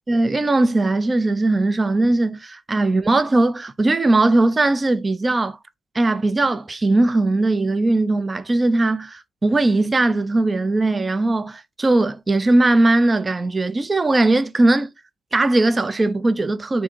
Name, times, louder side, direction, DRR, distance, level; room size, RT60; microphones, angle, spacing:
voice 1, 0.1-5.6 5.9-14.9 15.3-16.8, right 2 dB, 25° right, 0.4 m, -19 dB
3.6 x 2.6 x 4.3 m
cardioid pair, 90°, 0 cm